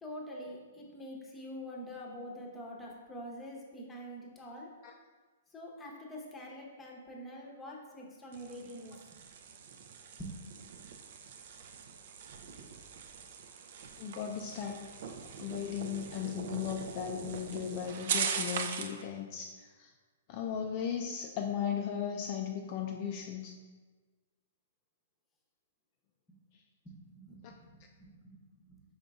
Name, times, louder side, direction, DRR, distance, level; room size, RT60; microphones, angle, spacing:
voice 1, 0.0-4.8 5.5-9.2 10.2-10.3 26.8-28.8, equal, 10° left, -2 dB, 0.8 m, -46 dB
sound 1, 8.3-19.0, right 6 dB, 60° right, 0.4 m, -41 dB
voice 2, 14.0-14.9 15.4-19.9 20.3-23.6 27.4-27.5, left 8 dB, 45° left, 2 dB, 0.3 m, -37 dB
5.0 x 3.8 x 2.3 m, 1.4 s
hypercardioid pair, 130°, 0 cm